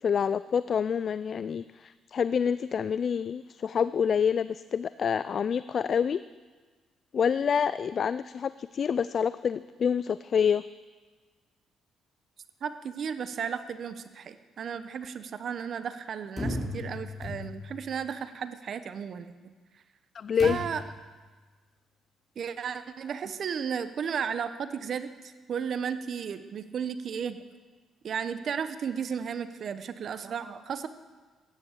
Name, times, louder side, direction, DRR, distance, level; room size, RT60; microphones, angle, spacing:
voice 1, 0.0-6.2 7.1-10.6 20.1-20.6, left 7 dB, 55° left, 15 dB, 0.4 m, -27 dB
voice 2, 12.6-19.5 20.4-20.8 22.4-27.4 28.0-30.9, right 7 dB, 60° right, 12 dB, 0.9 m, -34 dB
sound 1, 16.4-17.8 20.4-21.0, left 2 dB, 25° left, 4.7 m, -35 dB
13.5 x 10.0 x 8.1 m, 1.4 s
supercardioid pair, 70°, 0 cm